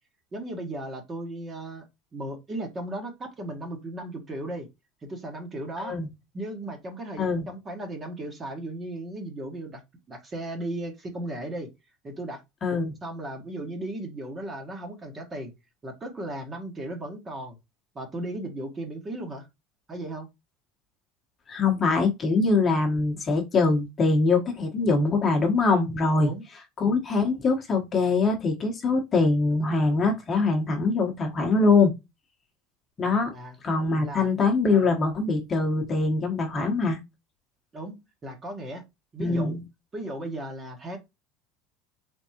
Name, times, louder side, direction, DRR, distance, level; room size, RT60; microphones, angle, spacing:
voice 1, 0.3-1.9 2.1-4.7 5.0-5.9 6.3-9.8 10.1-11.7 12.0-12.4 13.0-15.5 15.8-17.6 17.9-19.5 19.9-20.3 26.2-26.4 33.3-33.5 34.0-34.3 37.7-38.8 39.1-39.6 39.9-41.0, right 1 dB, 20° right, 1.2 m, -36 dB
voice 2, 7.2-7.5 12.6-12.9 21.5-26.3 26.8-31.9 33.0-33.3 33.6-37.0 39.2-39.6, left 3 dB, 25° left, 1.1 m, -23 dB
4.0 x 3.5 x 2.8 m
supercardioid pair, 140°, 0 cm